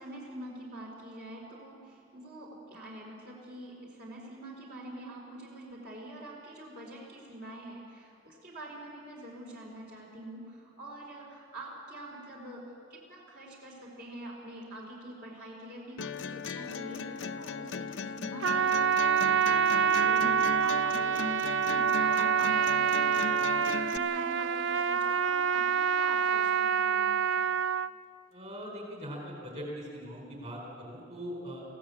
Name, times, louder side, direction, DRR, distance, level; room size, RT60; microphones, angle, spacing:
voice 1, 0.0-12.6 12.9-27.2, right 1 dB, 60° right, -3 dB, 4.3 m, -45 dB
sound 1, 16.0-24.0, left 5 dB, 90° left, 0.7 m, -37 dB
Trumpet, 18.4-27.9, right 7 dB, 90° right, 0.5 m, -26 dB
voice 2, 28.3-31.6, equal, 40° right, 0 dB, 4.7 m, -41 dB
22.5 x 16.0 x 8.5 m, 2.4 s
head